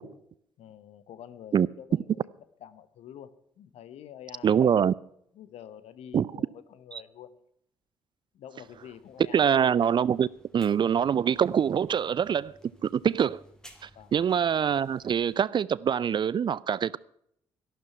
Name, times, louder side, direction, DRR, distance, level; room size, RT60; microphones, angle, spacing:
voice 1, 0.6-2.3 2.6-4.8 5.3-7.3 8.3-9.5 13.9-14.1, left 10 dB, 55° left, 1.0 m, -47 dB
voice 2, 4.4-4.9 6.1-6.3 6.9-7.0 9.3-10.3 10.5-12.5 12.8-13.4 13.8-17.0, right 8 dB, 40° right, 0.5 m, -24 dB
sound 1, 8.6-15.4, equal, 5° left, 3.0 m, -58 dB
12.5 x 12.0 x 5.6 m
figure-of-eight pair, 40°, 12 cm